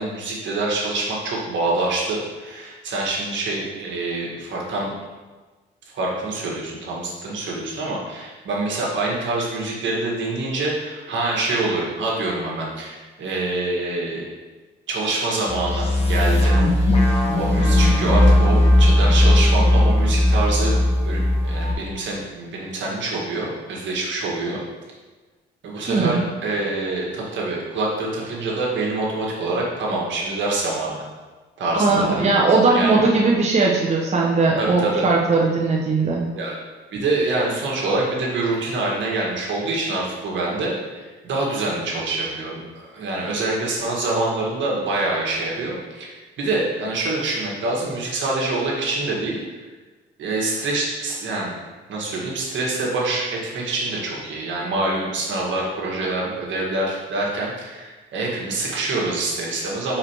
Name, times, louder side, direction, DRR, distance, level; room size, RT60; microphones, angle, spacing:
voice 1, 0.0-4.9 5.9-14.2 14.9-16.6 17.3-20.8 21.0-24.6 25.6-31.0 31.6-32.3 32.7-33.3 34.6-35.1 36.3-36.6 36.9-46.1 46.4-49.6 50.2-51.5 51.9-60.0, right 2 dB, 70° right, -3 dB, 1.7 m, -25 dB
sound 1, 15.5-21.7, left 1 dB, 30° left, 1.3 m, -17 dB
voice 2, 25.9-26.2 31.8-36.2, right 3 dB, 35° right, -3 dB, 0.9 m, -19 dB
4.9 x 4.5 x 4.6 m, 1.3 s
cardioid pair, 90°, 20 cm